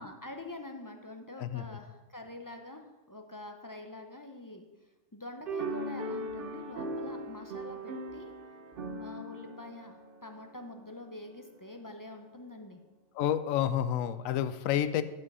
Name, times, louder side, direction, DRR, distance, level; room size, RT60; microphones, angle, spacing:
voice 1, 0.0-8.3 9.0-12.8, left 2 dB, 25° left, 4 dB, 0.4 m, -46 dB
sound 1, 5.5-11.0, right 1 dB, 50° right, 0.8 m, -39 dB
voice 2, 13.2-15.0, left 10 dB, 85° left, 13 dB, 1.0 m, -29 dB
11.0 x 5.5 x 5.5 m, 1.2 s
omnidirectional pair, 1.4 m